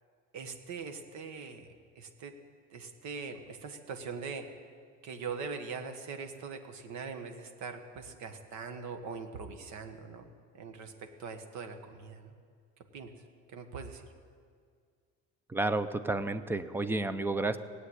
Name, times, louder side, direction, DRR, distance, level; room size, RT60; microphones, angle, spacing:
voice 1, 0.3-1.7 1.9-2.4 2.7-4.5 5.0-10.2 10.5-12.3 12.9-13.1 13.5-14.1, right 5 dB, 60° right, 6 dB, 1.5 m, -42 dB
voice 2, 15.5-17.6, right 2 dB, 5° right, 12 dB, 0.4 m, -31 dB
17.5 x 8.2 x 9.8 m, 2.1 s
cardioid pair, 165°, 32 cm